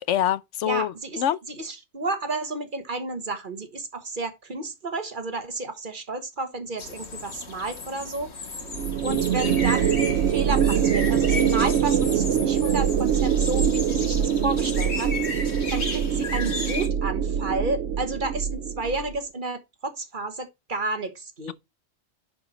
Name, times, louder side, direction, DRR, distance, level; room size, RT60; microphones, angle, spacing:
voice 1, 0.0-1.4 21.5-21.6, left 11 dB, 90° left, 1.0 m, -25 dB
voice 2, 0.6-1.2 1.5-8.3 9.0-15.1 15.7-21.5, right 2 dB, 45° right, 1.5 m, -31 dB
sound 1, 6.8-16.9, left 3 dB, 70° left, 2.0 m, -34 dB
sound 2, 8.7-19.2, right 8 dB, 80° right, 1.0 m, -24 dB
10.5 x 4.9 x 4.3 m
omnidirectional pair, 1.2 m